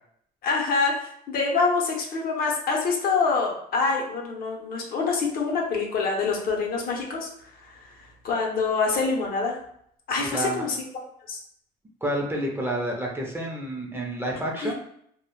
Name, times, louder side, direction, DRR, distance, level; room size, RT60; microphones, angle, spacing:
voice 1, 0.4-7.3 7.6-7.7 8.2-9.6 10.1-10.9 11.3-11.4 14.6-14.7, left 4 dB, 60° left, 0 dB, 0.6 m, -25 dB
voice 2, 10.2-10.6 12.0-14.7, right 1 dB, 15° right, -1 dB, 0.5 m, -29 dB
2.1 x 2.0 x 2.9 m, 0.68 s
cardioid pair, 110°, 17 cm